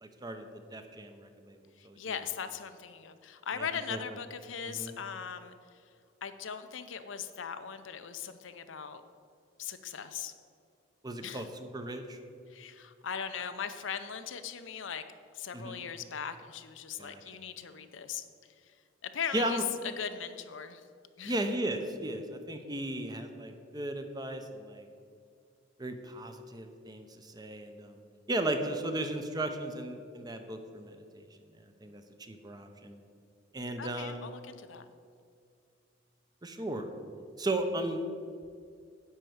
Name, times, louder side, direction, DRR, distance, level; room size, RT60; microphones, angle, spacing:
voice 1, 0.0-1.6 1.8-2.0 3.5-4.0 4.6-4.9 11.0-12.2 15.5-15.8 17.0-17.2 19.3-19.6 21.2-24.9 25.8-28.0 28.3-31.3 31.8-32.9 33.5-34.3 36.4-36.9 37.4-38.0, right 1 dB, 20° right, 6 dB, 0.7 m, -36 dB
voice 2, 1.8-5.8 6.2-9.0 9.6-10.3 11.2-11.5 12.5-15.0 15.3-18.3 18.6-18.8 19.0-19.6 20.0-20.9 21.2-21.4 33.8-34.9, left 7 dB, 85° left, 10 dB, 0.6 m, -39 dB
10.5 x 4.5 x 7.9 m, 2.3 s
head